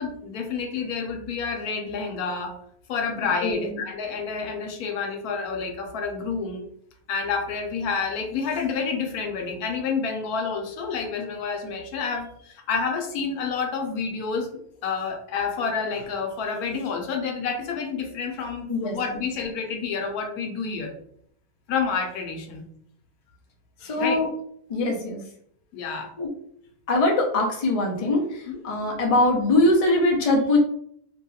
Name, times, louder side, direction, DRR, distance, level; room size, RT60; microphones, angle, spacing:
voice 1, 0.0-2.6 2.9-6.6 7.1-14.5 14.8-20.9 21.7-22.6 23.8-24.2 25.7-26.1 28.5-28.6, left 5 dB, 85° left, 3 dB, 1.1 m, -29 dB
voice 2, 3.4-3.7 18.7-19.2 23.8-24.3 24.7-25.2 26.2-26.3 26.9-30.6, left 2 dB, 55° left, 0 dB, 0.4 m, -22 dB
2.9 x 2.8 x 2.3 m, 0.67 s
omnidirectional pair, 1.6 m